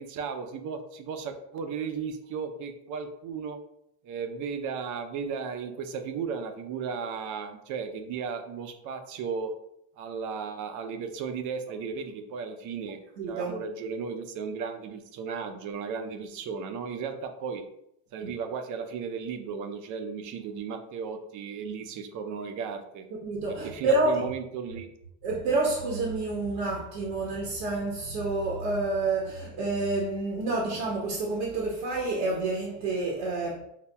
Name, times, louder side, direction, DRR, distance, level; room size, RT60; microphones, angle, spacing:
voice 1, 0.0-3.6 4.0-9.5 10.0-13.0 13.3-17.6 18.1-23.1 23.5-24.9, right 6 dB, 60° right, 0.6 m, -35 dB
voice 2, 13.2-13.5 18.2-18.3 23.2-24.2 25.2-33.6, right 2 dB, 75° right, 1.0 m, -28 dB
5.7 x 2.0 x 2.2 m
supercardioid pair, 110°, 35 cm